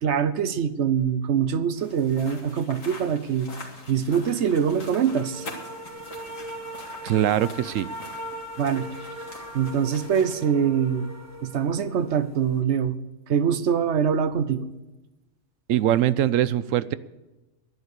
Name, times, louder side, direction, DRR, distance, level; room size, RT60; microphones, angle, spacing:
voice 1, 0.0-3.5 3.9-5.5 8.6-8.9 9.5-11.1 11.4-13.0 13.3-14.7, right 7 dB, 65° right, 13 dB, 1.0 m, -24 dB
sound 1, 1.8-10.5, left 2 dB, 80° left, 2.7 m, -44 dB
sound 2, 4.2-12.6, right 1 dB, 15° right, 1.3 m, -40 dB
voice 2, 7.0-7.9 15.7-16.9, right 12 dB, 90° right, 16 dB, 1.0 m, -22 dB
11.0 x 11.0 x 6.7 m, 1.1 s
omnidirectional pair, 1.3 m